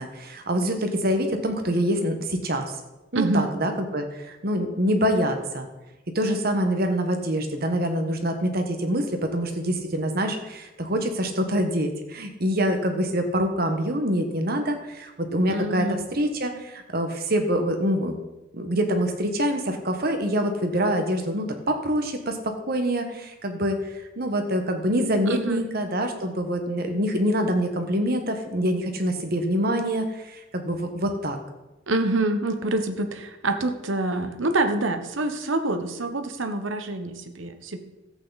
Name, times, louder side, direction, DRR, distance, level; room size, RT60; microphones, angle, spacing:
voice 1, 0.0-2.8 3.1-5.7 6.1-18.2 18.5-31.4, equal, 50° right, 5 dB, 1.4 m, -25 dB
voice 2, 3.1-3.5 15.5-16.0 25.3-25.6 31.9-37.8, right 2 dB, 85° right, 7 dB, 1.1 m, -26 dB
14.0 x 8.4 x 4.1 m, 1.0 s
head